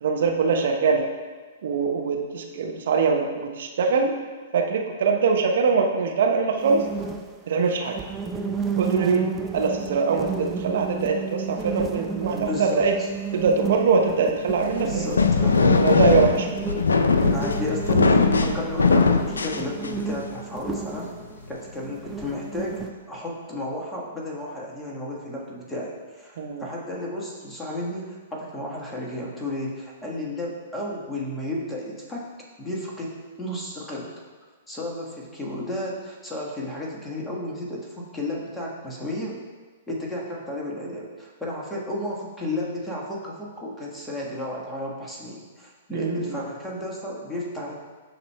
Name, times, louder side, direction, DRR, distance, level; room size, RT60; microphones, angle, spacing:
voice 1, 0.0-1.0 1.6-4.2 4.5-6.9 7.5-8.0 8.8-9.2 9.5-12.9 13.3-15.2 15.8-16.6 18.5-18.6 26.4-26.6 45.9-46.4, right 5 dB, 60° right, 2 dB, 0.8 m, -23 dB
sound 1, 6.6-22.9, right 5 dB, 15° right, 0.5 m, -32 dB
voice 2, 12.3-13.1 14.8-15.7 17.3-21.1 21.5-22.8 23.1-32.3 32.6-34.2 34.7-39.4 39.9-47.7, left 1 dB, 5° left, -4 dB, 1.4 m, -33 dB
sound 2, 14.5-20.2, left 4 dB, 80° left, 0.4 m, -20 dB
12.5 x 4.1 x 2.2 m, 1.4 s
figure-of-eight pair, 115°, 0 cm